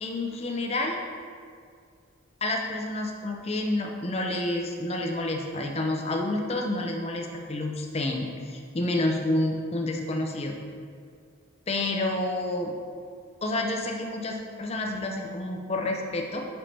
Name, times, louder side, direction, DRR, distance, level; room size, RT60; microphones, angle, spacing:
voice 1, 0.0-1.0 2.4-10.6 11.7-12.7 13.4-16.5, left 2 dB, 30° left, 2 dB, 0.6 m, -29 dB
5.6 x 5.1 x 4.3 m, 2.2 s
head